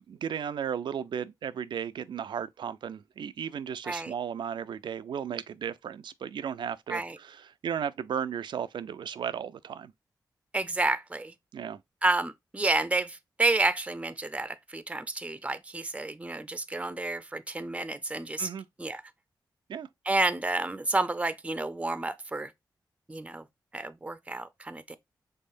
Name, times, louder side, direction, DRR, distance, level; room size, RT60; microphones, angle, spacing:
voice 1, 0.0-9.9 11.5-11.8 18.4-18.7 19.7-19.9, right 8 dB, 80° right, 0.4 m, -35 dB
voice 2, 10.5-11.3 12.0-18.5 18.8-19.0 20.1-22.5 23.1-23.4 23.7-25.0, right 2 dB, 15° right, 0.6 m, -30 dB
5.5 x 3.6 x 2.5 m
cardioid pair, 50°, 8 cm